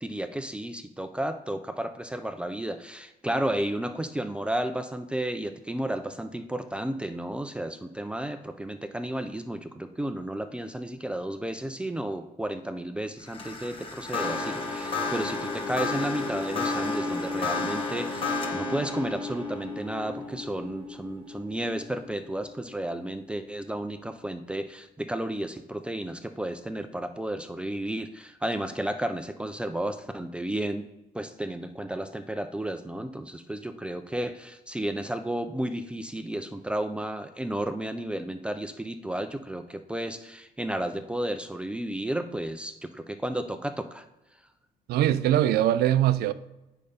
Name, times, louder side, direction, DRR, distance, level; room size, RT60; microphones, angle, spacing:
voice 1, 0.0-30.8 31.1-44.0, right 1 dB, 5° right, 0.4 m, -32 dB
sound 1, 13.2-22.6, left 3 dB, 35° left, 1.0 m, -32 dB
voice 2, 44.9-46.3, right 12 dB, 90° right, 0.5 m, -22 dB
8.8 x 5.3 x 5.1 m
cardioid pair, 160°, 16 cm